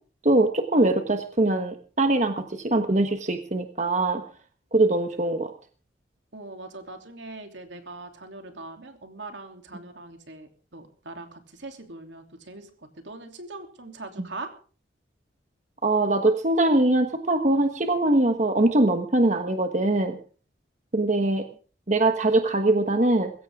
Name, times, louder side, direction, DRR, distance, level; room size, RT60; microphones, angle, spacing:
voice 1, 0.2-4.2 4.7-5.5 15.8-20.2 20.9-21.4 21.9-23.3, right 2 dB, 40° right, 6 dB, 1.3 m, -22 dB
voice 2, 6.3-12.7 13.0-14.5 20.9-21.0, right 2 dB, 80° right, 5 dB, 3.1 m, -41 dB
21.0 x 16.5 x 3.7 m, 0.40 s
head